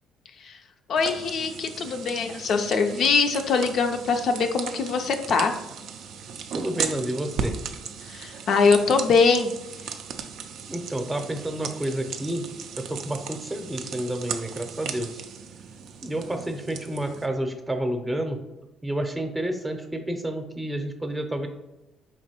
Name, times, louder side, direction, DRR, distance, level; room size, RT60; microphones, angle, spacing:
voice 1, 0.9-5.5 8.1-9.5, left 4 dB, 60° left, 5 dB, 0.4 m, -22 dB
sound 1, 1.0-17.3, right 6 dB, 65° right, 0.3 m, -37 dB
voice 2, 6.5-7.5 10.7-12.4 12.8-15.2 16.0-18.4 18.8-21.5, right 1 dB, 15° right, 5 dB, 0.6 m, -30 dB
4.4 x 2.9 x 2.8 m, 1.0 s
hypercardioid pair, 50°, 0 cm